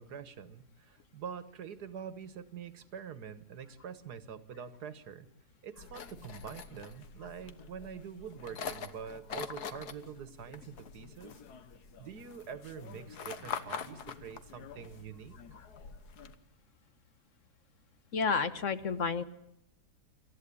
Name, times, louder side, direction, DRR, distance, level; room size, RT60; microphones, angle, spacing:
voice 1, 0.0-5.3 5.6-11.4 12.0-15.4, right 7 dB, 65° right, 13 dB, 1.9 m, -45 dB
sound 1, 5.8-16.4, left 6 dB, 65° left, 1.7 m, -45 dB
voice 2, 18.1-19.2, left 5 dB, 50° left, 12 dB, 1.4 m, -31 dB
27.5 x 14.0 x 8.5 m, 0.84 s
omnidirectional pair, 1.8 m